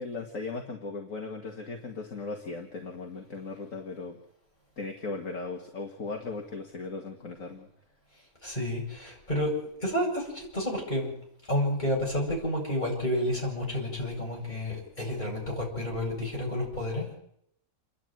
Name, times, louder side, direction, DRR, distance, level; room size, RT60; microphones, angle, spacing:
voice 1, 0.0-4.2 4.8-7.7 14.4-14.6, left 3 dB, 60° left, 2 dB, 2.3 m, -37 dB
voice 2, 8.4-11.1 11.5-17.1, left 1 dB, 30° left, -2 dB, 8.0 m, -30 dB
28.5 x 11.0 x 9.2 m, 0.73 s
omnidirectional pair, 1.6 m